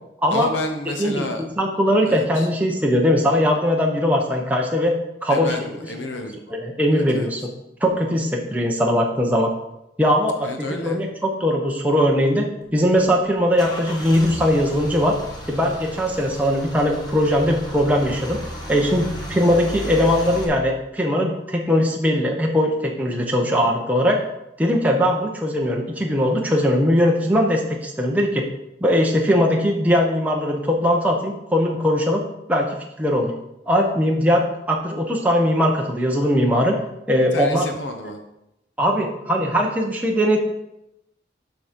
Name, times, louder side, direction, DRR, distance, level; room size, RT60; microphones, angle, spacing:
voice 1, 0.3-1.5 2.1-2.5 5.3-6.4 6.9-7.3 10.4-11.0 37.3-38.2, left 2 dB, 90° left, 5 dB, 0.9 m, -30 dB
voice 2, 1.6-4.9 5.2-5.5 6.5-7.4 7.8-9.5 10.0-12.5 12.7-15.2 15.5-18.4 18.7-24.2 24.6-28.5 28.8-32.2 32.5-32.7 33.0-33.3 33.7-36.7 37.1-37.6 38.8-40.4, equal, 10° right, 0 dB, 0.9 m, -20 dB
Car / Engine starting / Idling, 12.6-20.4, equal, 20° left, 1.5 m, -35 dB
7.1 x 5.8 x 5.1 m, 0.87 s
head